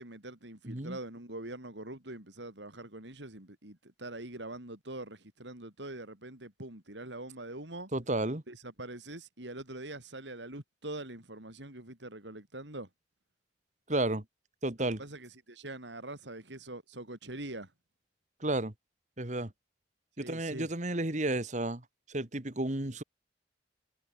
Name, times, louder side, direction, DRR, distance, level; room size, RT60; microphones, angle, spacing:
voice 1, 0.0-7.9 8.5-12.9 14.8-17.7 20.2-20.7, right 2 dB, 80° right, 5.0 m, -44 dB
voice 2, 0.6-1.0 7.9-8.4 13.9-14.2 14.6-15.0 18.4-18.7 19.2-19.5 20.2-21.8 22.1-23.0, right 2 dB, 40° right, 2.0 m, -32 dB
head